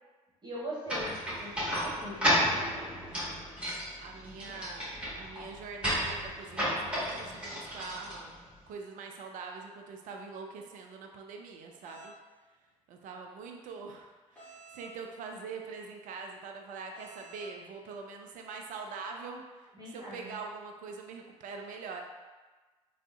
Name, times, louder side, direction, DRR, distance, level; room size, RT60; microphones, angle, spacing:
voice 1, 0.4-2.3 4.3-4.6 19.8-20.3, equal, 25° right, -7 dB, 1.1 m, -41 dB
sound 1, 0.9-8.7, equal, 5° right, 1.5 m, -33 dB
voice 2, 2.9-8.3 8.7-12.1 12.9-22.0, right 4 dB, 50° right, 2 dB, 0.4 m, -44 dB
sound 2, 11.8-12.1 14.4-14.9 16.9-17.5, right 3 dB, 10° left, 1.3 m, -50 dB
3.4 x 2.0 x 2.4 m, 1.3 s
figure-of-eight pair, 45°, 17 cm